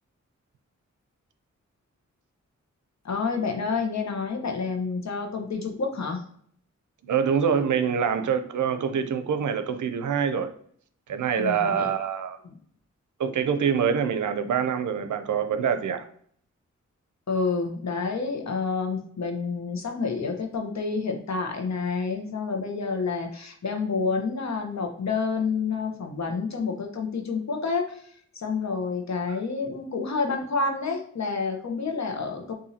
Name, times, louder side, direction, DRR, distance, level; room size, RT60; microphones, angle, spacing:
voice 1, 3.0-6.2 11.4-11.9 12.4-12.5 17.3-32.5, left 4 dB, 65° left, 3 dB, 1.0 m, -29 dB
voice 2, 7.0-10.5 11.1-12.4 13.2-16.1, right 7 dB, 75° right, 9 dB, 0.6 m, -25 dB
6.9 x 2.7 x 2.8 m, 0.62 s
cardioid pair, 65°, 30 cm